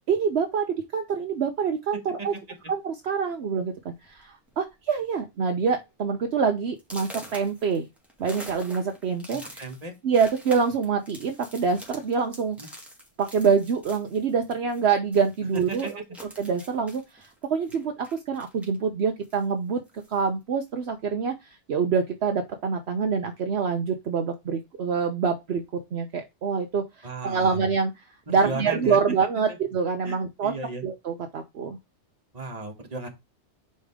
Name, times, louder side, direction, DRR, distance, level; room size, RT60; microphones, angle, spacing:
voice 1, 0.1-2.3 2.7-7.9 8.2-9.7 10.0-12.6 13.2-15.9 16.4-28.0 28.3-30.5 30.8-31.8, right 6 dB, 65° right, 5 dB, 1.0 m, -26 dB
sound 1, 2.3-2.6 3.4-3.5 3.9-4.2 4.5-4.9 5.3-5.4 5.9-6.0 6.8-14.9 15.1-18.8 19.2-20.2, equal, ahead, 2.0 m, -46 dB
voice 2, 9.3-10.0 12.6-12.7 15.5-15.9 27.0-27.6 28.3-29.0 30.0-30.8 32.3-33.1, right 3 dB, 35° right, 3 dB, 1.6 m, -35 dB
5.4 x 5.0 x 3.6 m, 0.22 s
omnidirectional pair, 1.2 m